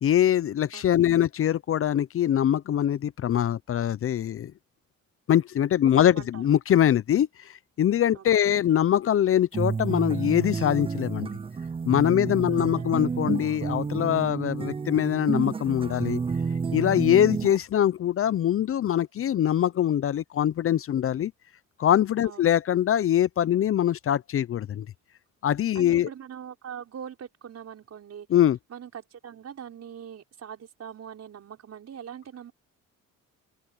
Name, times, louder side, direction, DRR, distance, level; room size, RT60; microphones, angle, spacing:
voice 1, 0.0-4.5 5.3-7.3 7.8-11.3 11.9-16.2 16.7-21.3 21.8-24.9 25.4-26.1 28.3-28.6, left 10 dB, 45° left, 0.6 m, -23 dB
voice 2, 0.7-1.2 5.8-6.4 8.1-8.8 12.5-13.0 22.2-22.5 25.7-28.3 28.7-32.5, right 8 dB, 55° right, 5.8 m, -42 dB
sound 1, 9.5-17.6, right 5 dB, 20° right, 0.4 m, -30 dB
open air
cardioid pair, 90°, 30 cm